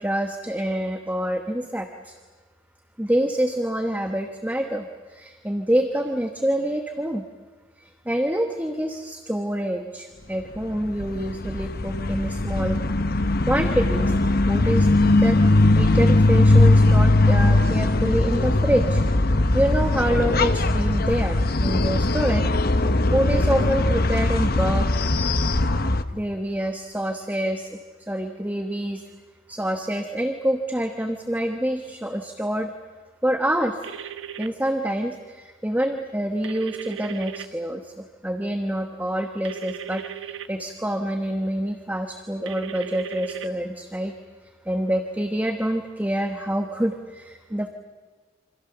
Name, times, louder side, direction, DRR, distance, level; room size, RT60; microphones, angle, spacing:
voice 1, 0.0-2.2 3.0-7.2 7.8-12.8 13.5-14.2 14.5-19.0 19.3-25.1 26.1-29.0 29.5-32.7 33.2-33.8 34.4-44.1 44.7-47.7, right 1 dB, 10° right, 6 dB, 1.1 m, -26 dB
sound 1, 10.5-26.0, left 2 dB, 50° left, 1.0 m, -20 dB
sound 2, 33.8-34.5 36.4-37.5 39.4-40.5 42.5-43.5, right 10 dB, 75° right, 1.2 m, -37 dB
27.5 x 26.0 x 6.9 m, 1.4 s
head